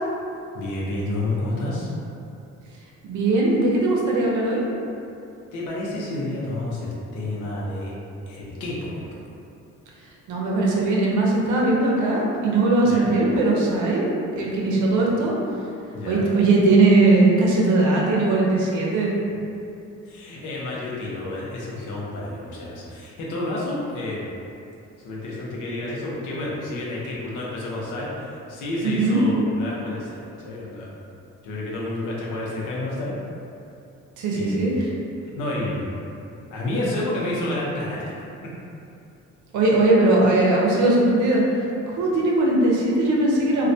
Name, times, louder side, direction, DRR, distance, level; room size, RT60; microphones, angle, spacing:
voice 1, 0.5-1.9 5.5-7.9 8.3-9.0 12.8-13.1 15.9-16.3 20.0-24.3 25.0-31.0 31.4-33.1 34.3-34.8 35.3-36.0 36.5-38.5, left 1 dB, 85° left, -5 dB, 0.6 m, -30 dB
voice 2, 3.0-4.6 10.3-14.1 14.4-15.3 16.1-19.1 28.8-29.2 34.2-34.9 39.5-41.4 42.0-43.7, right 2 dB, 75° right, -3 dB, 0.6 m, -19 dB
2.2 x 2.1 x 2.6 m, 2.7 s
cardioid pair, 90°, 30 cm